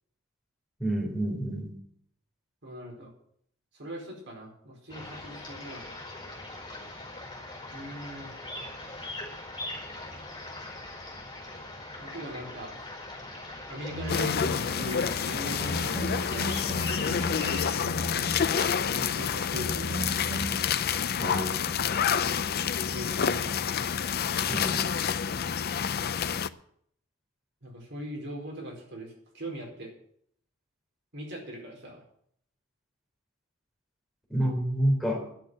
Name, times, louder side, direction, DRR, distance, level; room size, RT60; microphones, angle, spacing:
voice 1, 0.8-1.7 21.2-21.5 24.5-24.9 34.3-35.3, right 1 dB, ahead, -1 dB, 3.7 m, -28 dB
voice 2, 2.6-3.1 3.7-5.8 7.7-8.3 12.0-12.7 13.7-16.5 18.9-20.0 22.9-23.5 27.6-29.9 31.1-32.0, right 1 dB, 60° right, 0 dB, 4.6 m, -40 dB
sound 1, 4.9-17.8, left 2 dB, 20° left, 4.7 m, -41 dB
sound 2, 13.9-14.7 15.6-18.6 19.5-20.6, equal, 40° right, 7.1 m, -36 dB
sound 3, 14.1-26.5, left 7 dB, 50° left, 0.5 m, -28 dB
10.5 x 8.3 x 9.1 m, 0.67 s
head